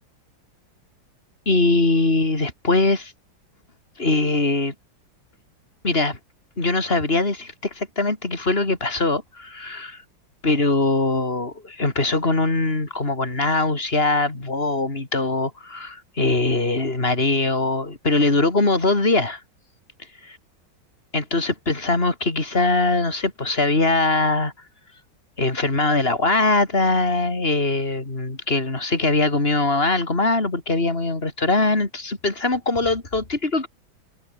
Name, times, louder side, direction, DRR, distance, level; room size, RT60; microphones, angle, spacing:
voice 1, 1.5-3.1 4.0-4.7 5.8-6.2 6.6-10.0 10.4-19.4 20.2-20.4 21.1-24.5 25.4-33.7, left 2 dB, 30° left, 4.1 m, -22 dB
omnidirectional pair, 2.1 m